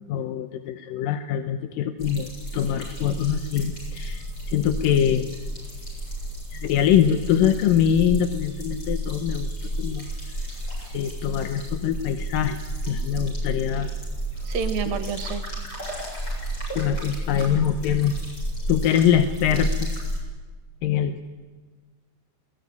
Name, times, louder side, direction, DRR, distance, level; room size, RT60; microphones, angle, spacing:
voice 1, 0.1-5.3 6.5-9.5 9.8-10.1 10.9-13.9 16.8-18.3 18.7-19.9 20.8-21.3, left 9 dB, 70° left, 8 dB, 2.2 m, -23 dB
sound 1, 2.0-20.2, right 1 dB, 25° left, 8.2 m, -31 dB
voice 2, 14.5-15.5, right 7 dB, 65° right, 9 dB, 2.8 m, -29 dB
21.0 x 19.0 x 9.5 m, 1.4 s
omnidirectional pair, 4.8 m